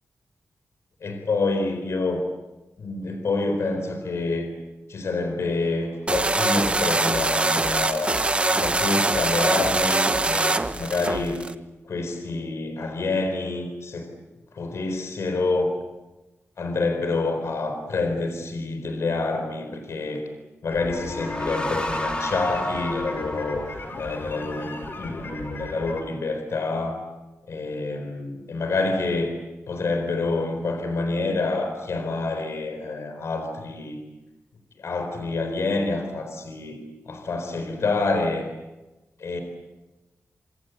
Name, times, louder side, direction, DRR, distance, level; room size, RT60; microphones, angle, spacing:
voice 1, 1.0-2.2 2.8-4.5 4.9-8.2 8.5-11.5 11.8-14.1 14.5-15.7 16.6-20.2 20.6-23.6 24.0-27.0 27.5-29.4 29.7-34.0 34.8-38.5 39.2-39.4, left 3 dB, 65° left, 6 dB, 4.4 m, -27 dB
sound 1, 6.1-11.5, right 2 dB, 25° right, 1.3 m, -23 dB
sound 2, 20.7-26.0, left 3 dB, 45° left, 4.9 m, -36 dB
sound 3, 20.9-24.4, left 1 dB, 20° left, 3.9 m, -32 dB
27.5 x 26.0 x 8.1 m, 1.1 s
wide cardioid pair, 140°, 5 cm